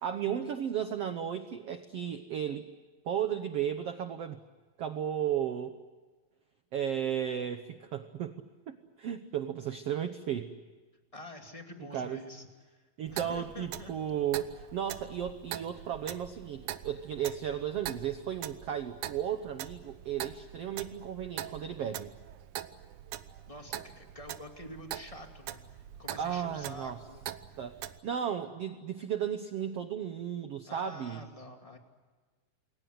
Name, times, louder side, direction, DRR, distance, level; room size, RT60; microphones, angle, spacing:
voice 1, 0.0-2.7 3.0-4.4 4.8-5.7 6.7-8.4 8.7-10.5 11.9-12.2 13.0-22.1 26.2-27.0 27.6-31.2, right 9 dB, 90° right, 9 dB, 1.3 m, -34 dB
voice 2, 11.1-12.5 13.1-13.9 23.5-27.3 30.7-31.8, left 1 dB, 10° left, 3 dB, 1.8 m, -47 dB
Clock, 13.1-28.0, right 12 dB, 70° right, 2.0 m, -43 dB
28.5 x 22.0 x 7.8 m, 1.4 s
omnidirectional pair, 4.3 m